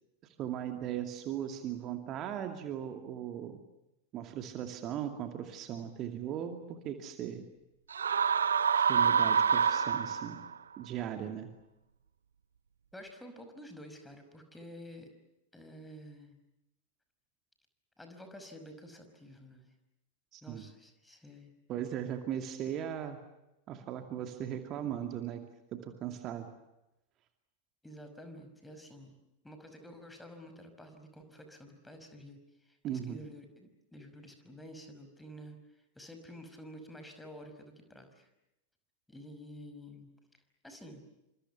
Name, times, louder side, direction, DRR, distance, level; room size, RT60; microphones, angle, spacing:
voice 1, 0.2-3.6 4.1-7.4 8.8-10.4 10.8-11.5 20.3-20.6 21.7-23.2 23.7-25.4 25.7-26.5 32.8-33.2, right 10 dB, 35° right, 7 dB, 2.5 m, -38 dB
sound 1, 7.9-10.5, right 7 dB, 70° right, 0.9 m, -27 dB
voice 2, 12.9-15.1 15.5-16.4 18.0-19.7 20.4-21.5 27.8-29.2 29.4-32.4 32.7-38.3 39.1-40.1 40.6-41.0, equal, 5° left, 6 dB, 5.6 m, -50 dB
28.0 x 26.5 x 7.1 m, 0.91 s
figure-of-eight pair, 90°, 0 cm